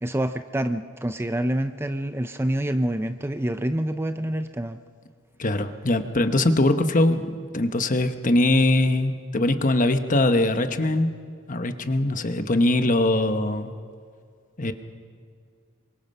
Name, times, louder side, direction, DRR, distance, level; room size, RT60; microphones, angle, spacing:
voice 1, 0.0-4.8, right 1 dB, 10° right, 9 dB, 0.5 m, -27 dB
voice 2, 5.4-11.1 11.5-13.7 14.6-14.7, left 2 dB, 40° left, 8 dB, 1.1 m, -22 dB
27.0 x 23.5 x 5.5 m, 2.1 s
head